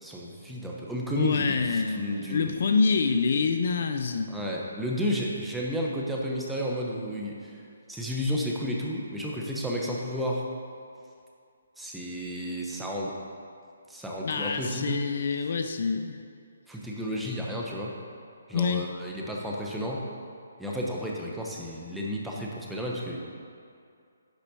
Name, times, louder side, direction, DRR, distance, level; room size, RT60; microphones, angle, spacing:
voice 1, 0.0-2.5 4.3-7.6 7.9-10.5 11.8-13.2 13.9-15.0 16.7-17.9 18.5-20.1 20.6-23.2, equal, ahead, -3 dB, 1.0 m, -32 dB
voice 2, 1.2-4.3 14.2-16.2 18.5-18.9, left 5 dB, 55° left, 7 dB, 0.5 m, -26 dB
10.5 x 4.2 x 6.2 m, 2.4 s
hypercardioid pair, 155°, 0 cm